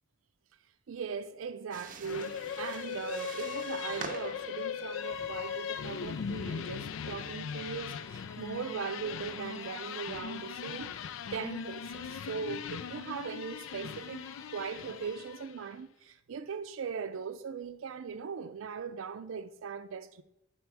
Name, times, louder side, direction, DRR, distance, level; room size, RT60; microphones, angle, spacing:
voice 1, 0.9-10.9 11.3-14.2 14.5-20.2, right 6 dB, 85° right, 0.4 m, -39 dB
sound 1, 1.7-7.6, right 5 dB, 45° right, 0.7 m, -48 dB
sound 2, 2.0-15.7, left 7 dB, 80° left, 0.4 m, -39 dB
Bowed string instrument, 4.9-15.5, left 3 dB, 15° left, 0.5 m, -54 dB
9.5 x 4.3 x 4.5 m
head